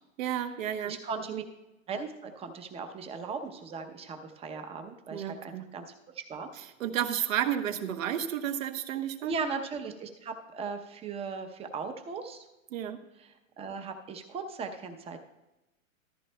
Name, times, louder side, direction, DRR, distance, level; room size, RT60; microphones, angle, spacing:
voice 1, 0.2-1.0 1.3-1.4 5.1-5.7 6.6-9.4 12.7-13.0, right 10 dB, 70° right, 7 dB, 1.1 m, -32 dB
voice 2, 0.8-1.4 1.9-5.8 6.1-6.5 9.2-12.4 13.2-15.2, right 5 dB, 15° right, 6 dB, 0.7 m, -38 dB
14.0 x 14.0 x 2.2 m, 0.99 s
hypercardioid pair, 140°, 41 cm